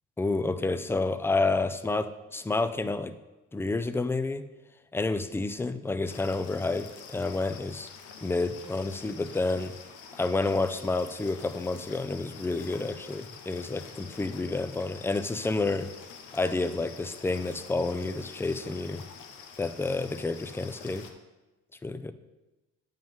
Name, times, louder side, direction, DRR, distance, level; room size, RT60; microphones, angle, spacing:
voice 1, 0.2-3.1 3.5-4.4 4.9-7.9 8.2-9.7 10.2-15.9 16.3-19.0 19.6-21.1 21.8-22.1, left 3 dB, 10° left, 11 dB, 0.4 m, -29 dB
sound 1, 6.1-21.1, left 6 dB, 85° left, 0.9 m, -47 dB
9.0 x 5.4 x 3.6 m, 1.1 s
cardioid pair, 90°, 30 cm